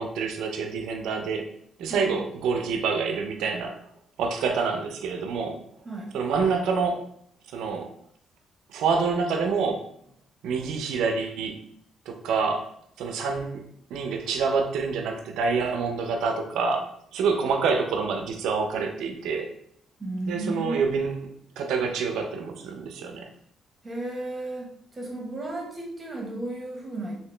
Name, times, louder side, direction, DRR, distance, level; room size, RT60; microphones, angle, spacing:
voice 1, 0.0-1.5 1.8-3.8 4.2-5.6 6.1-7.0 7.5-7.9 8.7-9.8 10.4-11.6 12.1-12.6 13.0-13.6 13.9-16.9 17.1-19.5 20.3-21.3 21.6-23.3, right 5 dB, 85° right, 4 dB, 0.5 m, -27 dB
voice 2, 20.0-20.9 23.8-27.2, right 2 dB, 25° right, 0 dB, 1.1 m, -34 dB
2.9 x 2.8 x 3.2 m, 0.66 s
cardioid pair, 90°, 0 cm